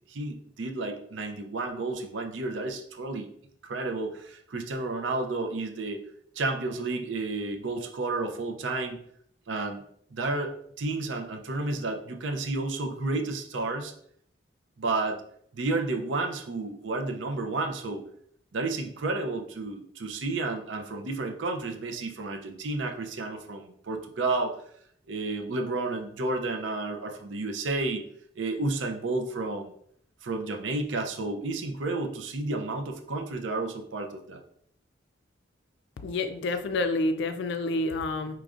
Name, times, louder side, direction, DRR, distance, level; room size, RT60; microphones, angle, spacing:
voice 1, 0.1-3.3 3.6-6.0 6.4-9.0 9.5-9.8 10.1-13.9 14.8-15.2 15.5-18.0 18.5-24.6 25.1-28.0 28.4-29.7 30.2-34.4, right 3 dB, 85° right, 5 dB, 0.6 m, -31 dB
voice 2, 36.0-38.4, left 2 dB, 70° left, 8 dB, 0.3 m, -28 dB
4.8 x 3.1 x 2.5 m, 0.67 s
head